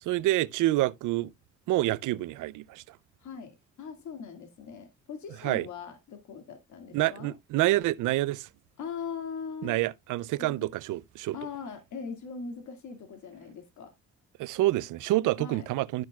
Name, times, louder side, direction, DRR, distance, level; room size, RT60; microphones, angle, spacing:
voice 1, 0.0-1.3 1.7-3.0 5.4-5.7 6.9-8.5 9.6-11.4 14.4-16.0, right 16 dB, 85° right, 0.5 m, -27 dB
voice 2, 3.2-7.3 8.8-9.8 10.4-10.5 11.3-13.9 15.4-15.7, left 5 dB, 70° left, 2.1 m, -40 dB
12.0 x 6.1 x 2.3 m
cardioid pair, 90°, 30 cm